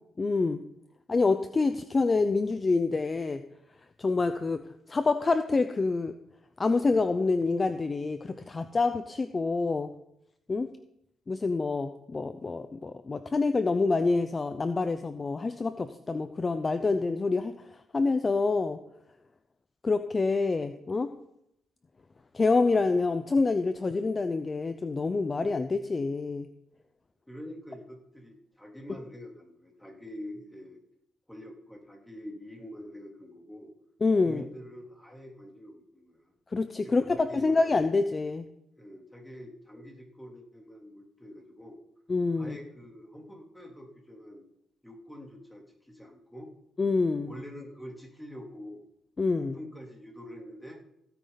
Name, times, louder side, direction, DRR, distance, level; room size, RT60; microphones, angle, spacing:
voice 1, 0.2-0.6 1.1-3.4 4.0-4.6 4.9-6.1 6.6-9.9 10.5-10.7 11.3-17.7 17.9-18.8 19.8-21.1 22.3-26.5 34.0-34.4 36.5-38.5 42.1-42.6 46.8-47.3 49.2-49.6, left 3 dB, 30° left, 10 dB, 0.7 m, -27 dB
voice 2, 27.3-30.8 31.3-33.7 34.2-36.3 36.8-37.6 38.8-41.8 42.4-44.4 44.8-46.5 47.2-48.9 49.4-50.8, equal, 5° left, 0 dB, 3.2 m, -45 dB
16.5 x 9.4 x 4.0 m, 0.77 s
cardioid pair, 90°, 0 cm